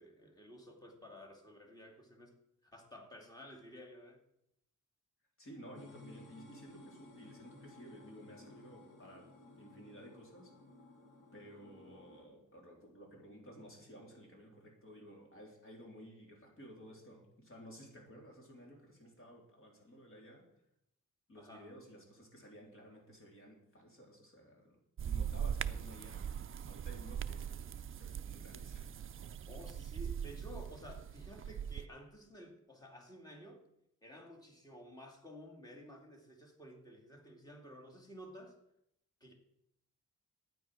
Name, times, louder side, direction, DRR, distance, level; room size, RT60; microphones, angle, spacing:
voice 1, 0.0-2.3 2.6-4.2 21.4-21.7 29.5-33.6 34.0-38.6 39.2-39.3, equal, 10° left, 0 dB, 2.5 m, -53 dB
voice 2, 5.4-10.5 11.3-20.4 21.3-24.8 25.0-27.6 28.0-28.9, equal, 45° left, 0 dB, 3.6 m, -55 dB
sound 1, 5.8-12.2, left 2 dB, 80° left, 2.2 m, -57 dB
sound 2, 25.0-31.8, right 8 dB, 45° right, 0.4 m, -41 dB
12.0 x 9.5 x 6.3 m, 0.80 s
wide cardioid pair, 160°, 31 cm